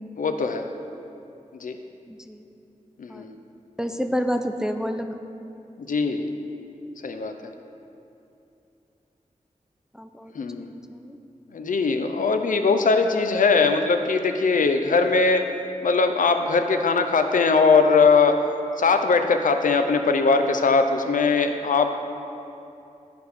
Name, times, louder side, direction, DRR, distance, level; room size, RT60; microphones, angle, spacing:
voice 1, 0.2-0.7 1.6-1.8 3.0-3.4 5.8-6.3 7.0-7.3 10.3-10.7 11.5-15.4 15.8-18.4 18.8-21.9, left 4 dB, 75° left, 6 dB, 0.5 m, -20 dB
voice 2, 2.1-2.4 3.1-3.3 3.8-5.2 9.9-11.2, equal, 5° right, 6 dB, 0.3 m, -29 dB
11.5 x 4.7 x 3.4 m, 2.7 s
wide cardioid pair, 100°, 14 cm